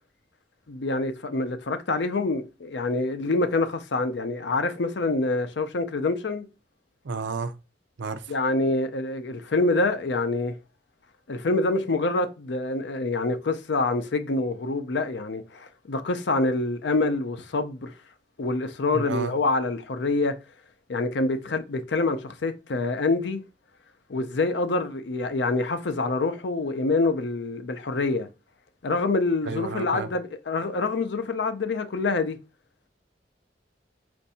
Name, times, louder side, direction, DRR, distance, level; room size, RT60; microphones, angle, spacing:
voice 1, 0.7-6.5 8.3-10.6 11.3-17.9 18.4-20.3 20.9-23.4 24.1-28.3 28.8-32.4, left 3 dB, 70° left, 0.6 m, -26 dB
voice 2, 7.0-7.5 8.0-8.3 18.9-19.3 29.4-30.1, right 4 dB, 90° right, 0.5 m, -31 dB
4.5 x 2.6 x 4.1 m
head